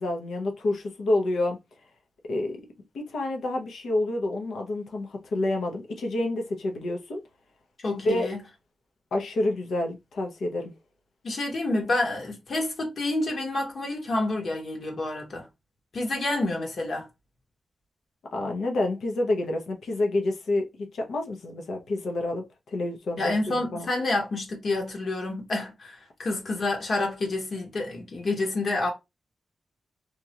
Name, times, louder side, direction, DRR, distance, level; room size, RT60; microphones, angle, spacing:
voice 1, 0.0-1.6 2.3-2.6 2.9-7.2 8.0-8.3 9.1-10.7 18.3-23.9, left 2 dB, 85° left, 0.8 m, -28 dB
voice 2, 7.8-8.4 11.2-15.5 15.9-17.1 23.2-28.9, left 2 dB, 60° left, 1.4 m, -28 dB
2.9 x 2.5 x 2.8 m
cardioid pair, 85°, 0 cm